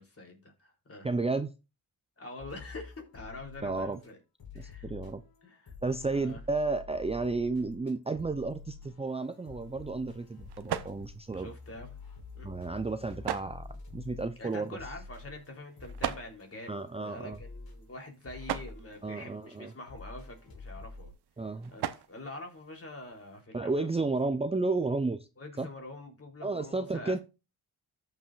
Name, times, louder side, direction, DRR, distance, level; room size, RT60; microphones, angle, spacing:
voice 1, 0.0-1.1 2.2-4.2 4.5-4.9 5.4-5.7 6.1-6.4 10.6-10.7 11.3-11.9 12.3-12.5 14.4-21.1 21.7-24.1 25.4-27.2, left 2 dB, 35° left, 3.5 m, -45 dB
voice 2, 1.0-1.5 3.6-4.0 4.6-5.2 5.8-11.5 12.4-14.7 16.7-17.4 19.0-19.7 21.4-21.7 23.5-25.3 25.6-25.7 26.4-27.2, right 3 dB, 15° right, 0.6 m, -32 dB
sound 1, 2.4-4.1 4.4-21.1, left 4 dB, 65° left, 3.1 m, -48 dB
sound 2, 9.1-23.4, right 10 dB, 85° right, 0.8 m, -43 dB
14.0 x 5.6 x 2.4 m
cardioid pair, 70°, 38 cm